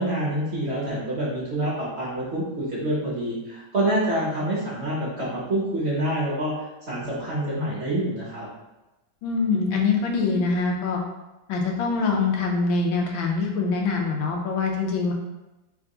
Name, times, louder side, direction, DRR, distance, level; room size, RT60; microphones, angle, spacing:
voice 1, 0.0-6.5 6.9-8.5, right 1 dB, 50° right, -6 dB, 0.9 m, -27 dB
voice 2, 9.2-11.0 11.5-15.1, left 4 dB, 90° left, 1 dB, 1.6 m, -24 dB
3.6 x 3.4 x 3.8 m, 1.0 s
omnidirectional pair, 2.1 m